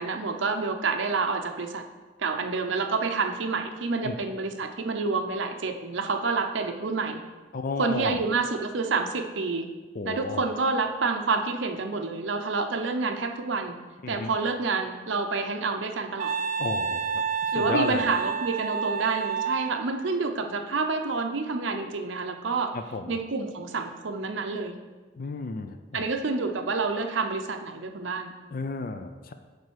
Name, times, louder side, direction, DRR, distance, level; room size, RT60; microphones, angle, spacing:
voice 1, 0.0-1.8 2.2-7.2 7.8-9.7 10.0-13.8 14.1-16.3 17.5-22.8 23.1-24.8 25.9-28.3, right 4 dB, 75° right, 5 dB, 0.7 m, -28 dB
voice 2, 7.5-8.2 9.9-10.5 14.0-14.4 16.6-18.1 22.7-23.2 25.1-26.1 28.5-29.3, left 3 dB, 45° left, 8 dB, 0.5 m, -33 dB
Wind instrument woodwind instrument, 16.2-19.8, right 6 dB, 40° right, 0.3 m, -29 dB
8.8 x 3.4 x 6.3 m, 1.3 s
head